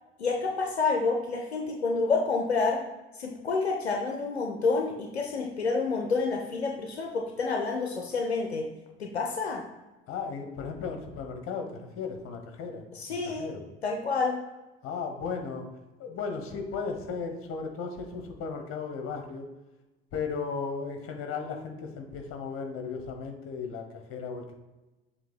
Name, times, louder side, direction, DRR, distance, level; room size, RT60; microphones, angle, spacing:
voice 1, 0.2-2.8 3.1-8.7 9.0-9.6 12.9-13.5 13.8-14.4, left 4 dB, 80° left, 2 dB, 0.7 m, -28 dB
voice 2, 10.1-13.6 14.8-15.7 16.0-19.5 20.1-24.5, left 5 dB, 45° left, 4 dB, 1.4 m, -36 dB
7.4 x 2.9 x 5.5 m, 1.1 s
figure-of-eight pair, 60°, 32 cm